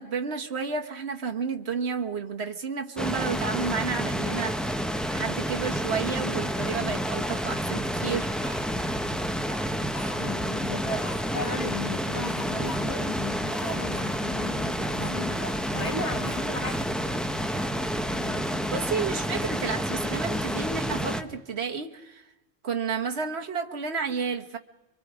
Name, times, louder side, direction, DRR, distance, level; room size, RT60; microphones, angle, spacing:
voice 1, 0.0-4.6 5.1-8.3 18.7-22.3 22.6-24.6, right 5 dB, 65° right, 1.6 m, -31 dB
sound 1, 3.0-21.2, equal, ahead, 0.8 m, -29 dB
Speech, 7.2-8.6 9.2-10.5 11.0-11.6 12.2-12.8 13.1-13.2 13.5-14.2 14.9-15.9 16.2-16.9 17.4-18.7, equal, 35° right, 4.9 m, -43 dB
voice 2, 10.2-17.2 18.1-18.7 19.3-19.5, left 3 dB, 75° left, 3.2 m, -36 dB
30.0 x 24.0 x 5.0 m
omnidirectional pair, 1.2 m